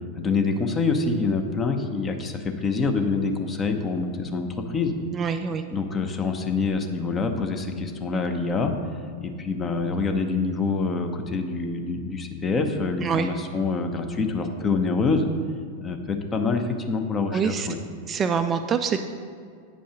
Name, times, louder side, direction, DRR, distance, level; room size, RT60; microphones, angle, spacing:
voice 1, 0.2-4.9 5.7-8.7 9.2-15.3 15.8-17.8, left 4 dB, 20° left, 5 dB, 0.7 m, -26 dB
voice 2, 5.1-5.6 13.0-13.3 17.3-17.7 18.1-19.0, right 6 dB, 25° right, 7 dB, 0.4 m, -25 dB
9.0 x 5.2 x 5.0 m, 2.2 s
figure-of-eight pair, 90°, 0 cm